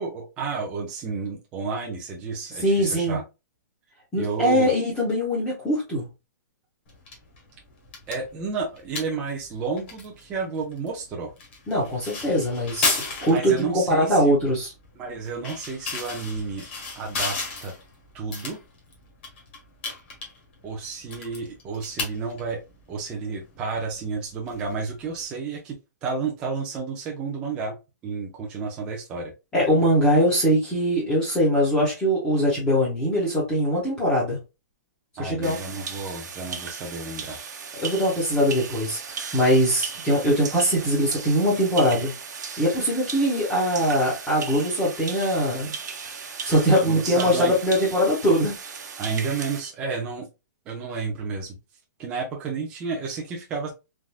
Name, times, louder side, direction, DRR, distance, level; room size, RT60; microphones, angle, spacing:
voice 1, 0.0-3.2 4.2-4.7 8.1-11.3 13.2-14.4 15.0-16.7 17.0-17.7 18.1-18.6 20.6-22.6 22.9-27.8 28.0-29.3 35.2-37.4 46.8-47.6 49.0-50.3 50.7-51.6 52.0-53.7, right 4 dB, 10° right, 0.4 m, -31 dB
voice 2, 2.6-3.2 4.1-6.1 11.7-13.0 13.2-14.7 29.5-34.4 35.2-35.6 37.8-42.1 42.6-45.7 46.4-48.5, equal, 10° left, 0.8 m, -22 dB
sound 1, 6.9-25.2, left 4 dB, 35° left, 1.1 m, -35 dB
sound 2, 35.4-49.6, right 6 dB, 70° right, 0.8 m, -36 dB
3.4 x 2.5 x 2.2 m
hypercardioid pair, 175°, 10 cm